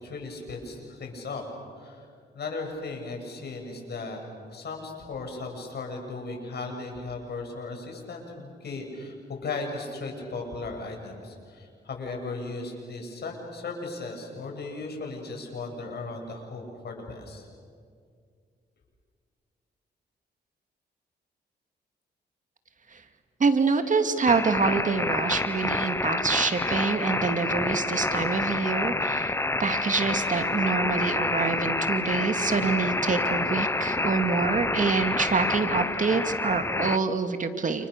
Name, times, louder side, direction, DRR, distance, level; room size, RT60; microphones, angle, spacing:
voice 1, 0.0-1.4 1.8-2.1 2.3-4.2 4.5-17.5, left 3 dB, 65° left, 2 dB, 7.3 m, -36 dB
voice 2, 23.4-37.9, right 4 dB, 45° right, 7 dB, 2.3 m, -26 dB
sound 1, 24.3-37.0, left 2 dB, 15° left, 0.8 m, -28 dB
30.0 x 29.5 x 6.8 m, 2.1 s
cardioid pair, 85°, 18 cm